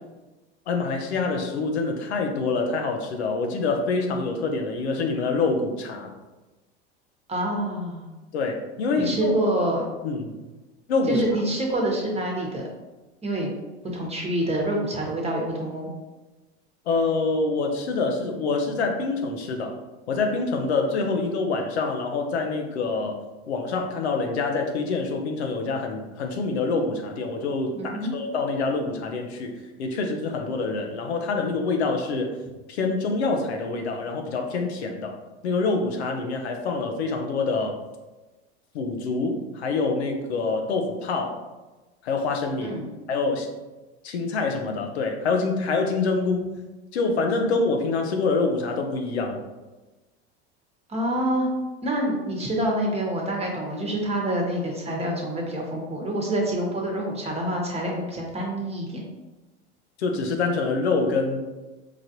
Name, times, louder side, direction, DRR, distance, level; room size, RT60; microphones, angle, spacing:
voice 1, 0.7-6.1 8.3-9.3 10.0-10.4 10.9-11.2 16.9-19.8 20.1-23.2 23.5-32.4 32.7-35.2 35.4-37.8 38.7-41.4 42.0-42.7 43.1-43.5 44.0-46.6 46.9-49.4 60.0-61.5, left 3 dB, 85° left, 3 dB, 0.7 m, -26 dB
voice 2, 7.3-8.1 9.0-9.8 11.1-12.6 13.2-13.5 13.9-15.9 27.7-28.1 42.6-42.9 50.9-51.5 51.8-59.1, right 1 dB, 20° right, -1 dB, 1.1 m, -26 dB
4.9 x 2.5 x 2.8 m, 1.1 s
hypercardioid pair, 90°, 32 cm